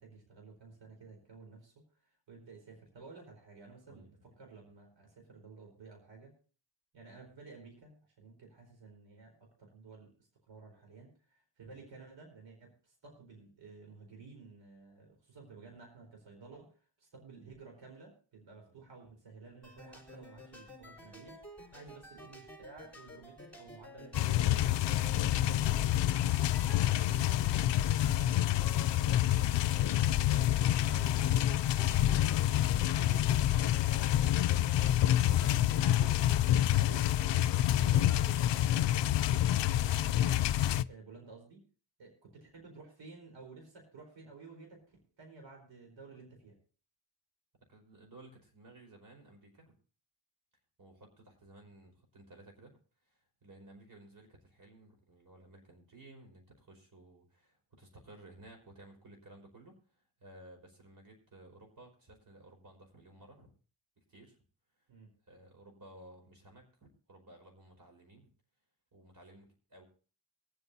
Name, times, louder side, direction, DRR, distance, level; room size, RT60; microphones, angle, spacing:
voice 1, 0.0-1.7 2.0-6.3 6.9-26.0 26.8-31.6 32.1-34.5 35.0-36.2 36.7-40.4 40.9-41.6 42.0-46.6 64.9-65.1, right 4 dB, 70° right, 2 dB, 4.5 m, -53 dB
voice 2, 3.9-4.3 47.7-49.7 50.8-52.7 53.0-63.5 64.1-64.4 65.3-68.3 68.9-69.9, right 1 dB, 45° right, 3 dB, 5.0 m, -56 dB
sound 1, 19.6-38.8, left 2 dB, 5° left, 4.3 m, -52 dB
sound 2, 24.1-40.8, left 13 dB, 70° left, 0.5 m, -28 dB
24.0 x 8.1 x 2.8 m, 0.38 s
cardioid pair, 85°, 46 cm